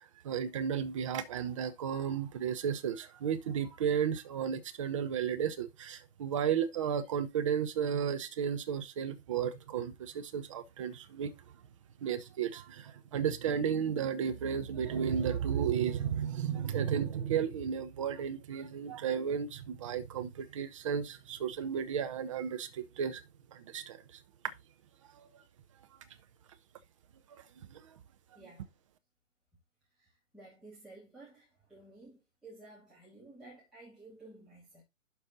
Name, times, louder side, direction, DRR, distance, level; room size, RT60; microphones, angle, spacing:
voice 1, 0.2-11.3 12.0-23.2 23.5-24.2 25.1-25.3 27.3-27.4 27.7-27.9, right 8 dB, 25° right, 0.8 m, -33 dB
voice 2, 28.3-28.7 30.0-30.1 30.3-34.8, right 2 dB, ahead, 2.5 m, -54 dB
11.5 x 4.4 x 3.9 m
figure-of-eight pair, 130°, 39 cm